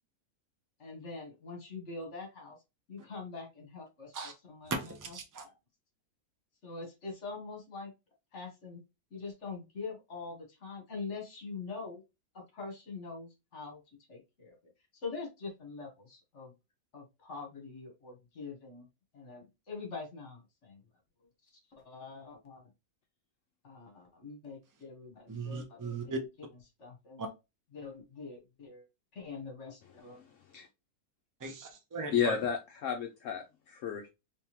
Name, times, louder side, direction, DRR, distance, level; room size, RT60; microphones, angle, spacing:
voice 1, 0.8-2.6 2.9-4.2 4.4-4.7 5.1-5.2 5.4-5.5 6.6-7.9 8.3-8.8 9.1-12.0 12.3-13.8 14.1-14.6 15.0-16.5 16.9-18.9 19.1-20.8 21.7-22.7 23.6-26.1 26.8-27.3 27.7-28.8 29.1-30.2, left 4 dB, 55° left, 1.5 m, -44 dB
voice 2, 4.7-5.4 25.3-26.2 27.2-27.3 31.4-32.4, right 3 dB, 30° right, 0.3 m, -38 dB
voice 3, 32.1-34.1, left 7 dB, 70° left, 0.8 m, -32 dB
3.4 x 3.1 x 2.9 m
omnidirectional pair, 1.6 m